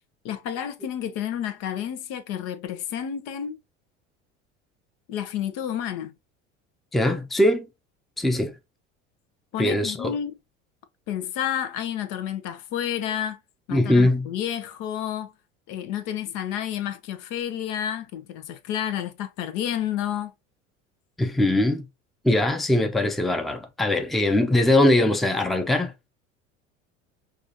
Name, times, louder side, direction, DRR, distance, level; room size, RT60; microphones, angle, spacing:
voice 1, 0.2-3.6 5.1-6.1 9.5-10.3 11.1-13.4 13.7-15.3 15.7-20.3, left 10 dB, 60° left, 0.8 m, -30 dB
voice 2, 6.9-7.7 8.2-8.5 9.6-10.1 13.7-14.3 21.2-21.8 22.2-25.9, left 1 dB, ahead, 0.6 m, -21 dB
4.8 x 2.5 x 2.7 m
hypercardioid pair, 75°, 37 cm